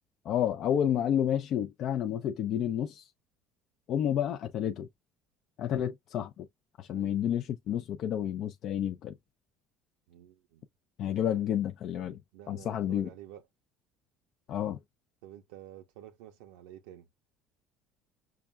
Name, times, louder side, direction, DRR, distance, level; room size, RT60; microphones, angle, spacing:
voice 1, 0.2-3.1 3.9-4.9 5.6-6.5 6.8-9.1 11.0-12.2 12.5-13.1 14.5-14.8, left 10 dB, 55° left, 0.5 m, -30 dB
voice 2, 10.1-10.7 12.3-13.4 15.2-17.1, right 12 dB, 90° right, 0.8 m, -50 dB
5.7 x 2.2 x 2.2 m
supercardioid pair, 100°, 0 cm